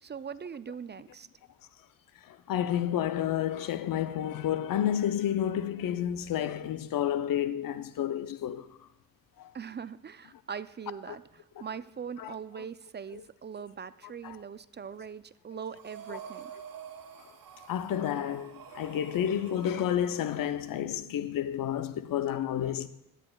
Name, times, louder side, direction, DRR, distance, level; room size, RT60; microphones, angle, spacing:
voice 1, 0.0-1.3 9.5-16.5, right 7 dB, 35° right, 0.4 m, -41 dB
voice 2, 2.2-8.8 9.4-9.5 11.1-11.2 12.2-12.3 13.1-13.2 14.2-14.4 16.1-16.2 17.7-22.9, left 10 dB, 80° left, 0.6 m, -30 dB
Breathing, 15.8-20.7, right 8 dB, 80° right, 1.3 m, -48 dB
15.5 x 10.0 x 2.3 m
cardioid pair, 60°, 34 cm